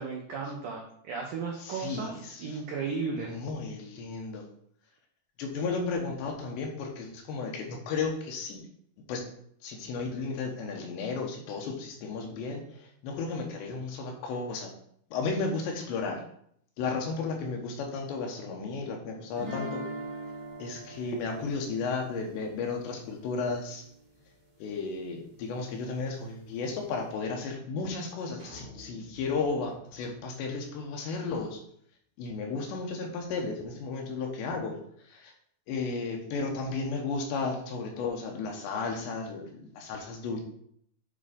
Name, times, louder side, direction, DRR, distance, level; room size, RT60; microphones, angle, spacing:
voice 1, 0.0-3.4, right 5 dB, 90° right, 0 dB, 1.7 m, -35 dB
voice 2, 1.6-2.6 3.2-4.5 5.4-8.7 9.1-9.2 9.6-14.7 15.1-16.2 16.8-19.8 20.6-23.8 24.6-31.6 32.2-34.8 35.0-35.3 35.7-40.4, left 4 dB, 75° left, 2 dB, 3.4 m, -34 dB
sound 1, 19.4-24.3, right 1 dB, 20° right, 1.0 m, -42 dB
sound 2, 28.4-30.9, left 2 dB, 60° right, 3.9 m, -52 dB
9.5 x 3.8 x 5.2 m, 0.67 s
omnidirectional pair, 5.2 m